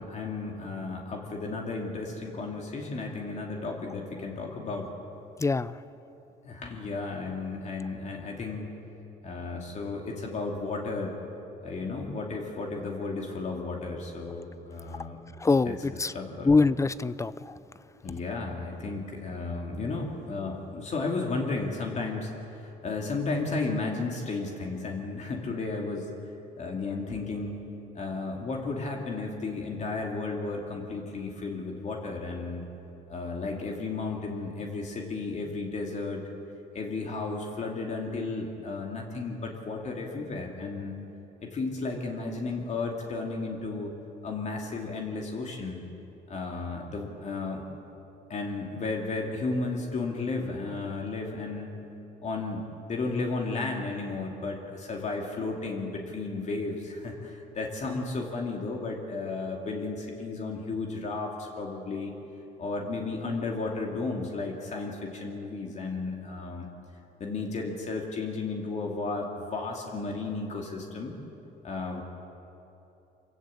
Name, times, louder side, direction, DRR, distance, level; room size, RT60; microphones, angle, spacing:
voice 1, 0.0-4.9 6.4-8.7 9.2-11.1 11.6-15.2 15.7-16.5 18.0-26.1 26.6-27.6 27.9-32.6 33.1-36.2 36.7-40.9 41.4-43.9 44.2-45.8 46.3-47.7 48.3-51.7 52.2-62.1 62.6-66.7 67.2-71.1 71.6-72.0, left 3 dB, 45° left, 0 dB, 2.7 m, -33 dB
voice 2, 5.4-5.8 15.4-16.1 16.4-17.6, left 3 dB, 20° left, 16 dB, 0.5 m, -24 dB
24.5 x 15.5 x 8.5 m, 3.0 s
cardioid pair, 110°, 17 cm